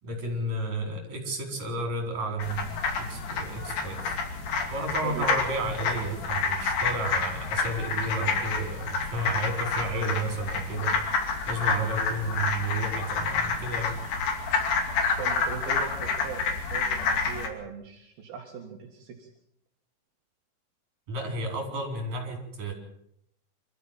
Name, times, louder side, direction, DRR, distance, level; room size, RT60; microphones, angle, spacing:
voice 1, 0.0-4.0 4.7-10.9 11.5-14.0 21.1-22.7, right 2 dB, 50° right, 3 dB, 6.0 m, -32 dB
sound 1, 2.4-17.5, left 4 dB, 65° left, 4.3 m, -29 dB
voice 2, 5.0-5.4 15.2-19.3, right 6 dB, 70° right, 0 dB, 3.9 m, -39 dB
26.5 x 14.0 x 7.5 m, 0.72 s
omnidirectional pair, 4.5 m